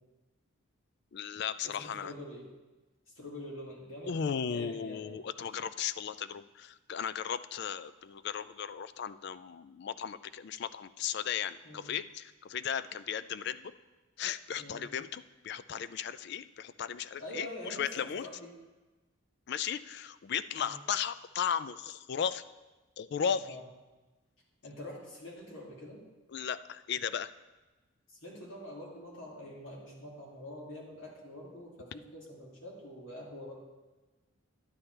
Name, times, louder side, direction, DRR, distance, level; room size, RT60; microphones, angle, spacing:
voice 1, 1.1-2.1 4.1-13.7 14.2-18.3 19.5-22.4 23.0-23.6 26.3-27.3, left 7 dB, 50° left, 14 dB, 0.3 m, -36 dB
voice 2, 1.6-2.5 3.2-5.1 11.6-11.9 14.6-14.8 17.2-18.5 20.6-20.8 23.4-23.6 24.6-26.0 28.1-33.5, left 1 dB, 65° left, -3 dB, 2.5 m, -45 dB
11.0 x 8.7 x 3.3 m, 1.2 s
head